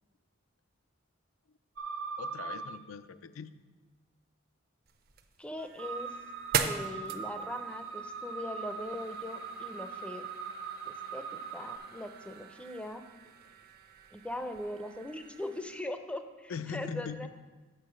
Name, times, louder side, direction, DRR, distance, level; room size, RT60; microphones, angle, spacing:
sound 1, 1.8-2.8 5.8-11.8, right 5 dB, 70° right, 0.9 m, -40 dB
voice 1, 2.2-3.5 16.5-17.3, left 6 dB, 80° left, 11 dB, 0.4 m, -40 dB
sound 2, 4.9-15.8, right 6 dB, 50° right, 0.5 m, -41 dB
voice 2, 5.4-6.2 6.6-10.3 10.9-13.0 14.1-17.3, left 1 dB, 5° left, 8 dB, 0.4 m, -40 dB
6.7 x 5.9 x 6.3 m, 1.3 s
head